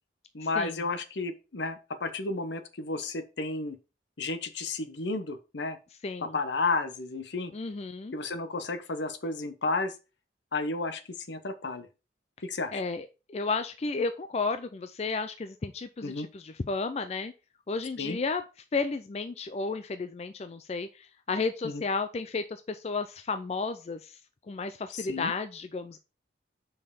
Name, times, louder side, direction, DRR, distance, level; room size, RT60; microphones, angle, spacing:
voice 1, 0.3-3.8 4.2-5.8 6.3-7.5 8.1-9.9 10.5-11.0 11.3-11.9 12.4-12.8 16.0-16.3 18.0-18.2 21.6-21.8 24.9-25.3, left 3 dB, 70° left, 10 dB, 0.8 m, -32 dB
voice 2, 6.0-6.4 7.5-8.1 12.7-17.3 17.7-18.4 18.7-24.2 24.5-26.0, left 4 dB, 35° left, 10 dB, 0.4 m, -33 dB
5.5 x 4.4 x 4.7 m, 0.30 s
head